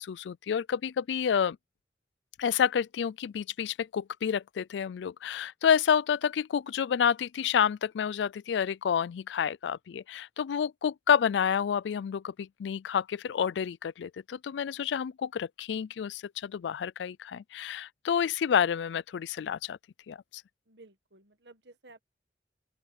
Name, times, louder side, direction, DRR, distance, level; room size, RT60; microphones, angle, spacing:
voice 1, 0.0-1.6 2.4-19.8 20.1-20.4, left 7 dB, 90° left, 0.3 m, -29 dB
voice 2, 20.7-22.0, right 2 dB, 80° right, 1.6 m, -54 dB
open air
head